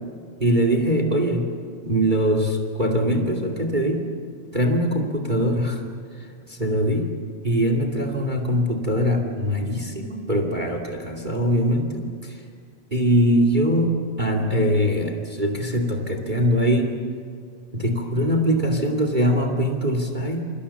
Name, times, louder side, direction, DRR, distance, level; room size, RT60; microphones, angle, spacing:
voice 1, 0.4-1.5 1.8-4.1 4.5-5.8 6.2-7.1 7.4-12.4 12.9-17.0 17.7-20.4, equal, 15° right, 5 dB, 2.3 m, -22 dB
28.5 x 25.0 x 7.1 m, 2.2 s
omnidirectional pair, 3.3 m